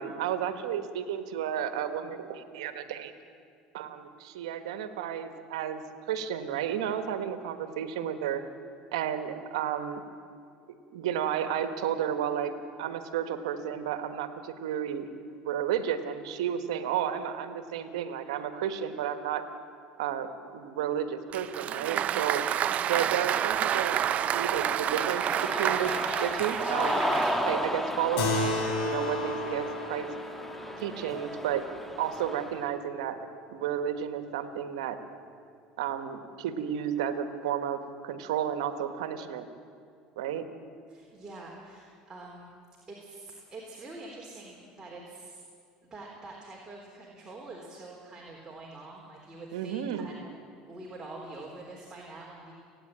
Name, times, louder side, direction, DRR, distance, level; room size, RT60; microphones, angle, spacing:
voice 1, 0.0-3.1 3.7-5.8 6.1-8.4 8.9-10.0 10.9-12.5 12.8-15.1 15.4-19.4 20.0-22.4 22.9-25.2 25.5-25.9 26.2-27.0 27.4-28.6 28.8-30.1 30.8-31.7 32.0-33.2 33.5-35.0 35.8-39.5 40.2-40.4 49.5-50.1, right 9 dB, 85° right, 9 dB, 1.5 m, -32 dB
Applause, 21.3-27.7, right 10 dB, 45° right, 0.7 m, -29 dB
voice 2, 22.6-22.9 40.9-42.5 42.9-45.4 45.8-50.3 50.7-52.5, right 2 dB, 20° right, -3 dB, 3.8 m, -45 dB
Cheering, 23.4-32.6, equal, 5° left, 1.6 m, -34 dB
Keyboard (musical), 28.2-33.0, left 2 dB, 80° left, 3.8 m, -34 dB
29.5 x 10.0 x 8.8 m, 2.3 s
supercardioid pair, 90°, 3 cm